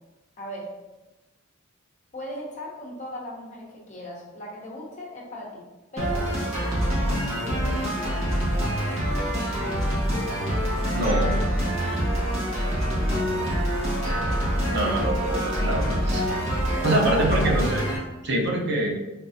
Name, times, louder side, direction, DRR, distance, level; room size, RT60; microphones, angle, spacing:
voice 1, 0.4-0.7 2.1-5.6 5.9-6.3 6.9-7.9 13.3-13.6 16.5-17.0, equal, 35° left, -3 dB, 0.9 m, -38 dB
sound 1, 6.0-18.0, equal, 30° right, 1.4 m, -25 dB
voice 2, 10.9-11.4 14.7-16.2 16.8-17.9 18.2-18.9, right 1 dB, 55° right, -1 dB, 0.6 m, -24 dB
3.7 x 3.4 x 2.7 m, 1.1 s
head